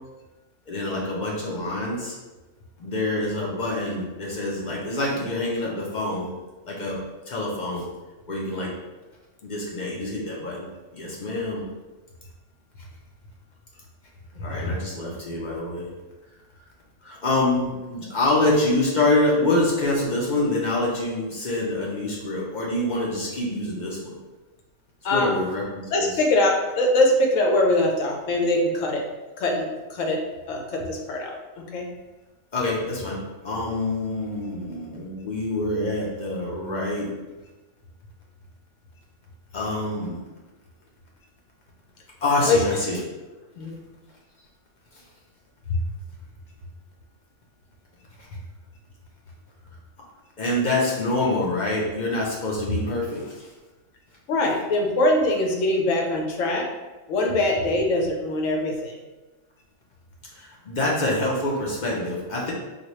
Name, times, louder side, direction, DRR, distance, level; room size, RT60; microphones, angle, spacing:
voice 1, 0.7-2.2 2.8-6.3 6.6-7.0 7.3-7.9 8.3-8.7 9.4-10.7 10.9-11.6 14.4-15.9 17.0-24.2 25.1-26.1 32.5-37.1 39.5-40.2 42.2-43.0 45.7-45.8 48.2-48.3 50.4-53.5 60.3-62.5, left 2 dB, 50° left, -4 dB, 0.6 m, -26 dB
voice 2, 25.0-25.4 25.9-29.1 29.4-30.2 30.5-31.9 42.5-42.6 43.6-43.8 54.3-56.7 57.1-59.0, left 1 dB, 75° left, 1 dB, 1.0 m, -23 dB
4.1 x 2.2 x 3.0 m, 1.2 s
omnidirectional pair, 1.3 m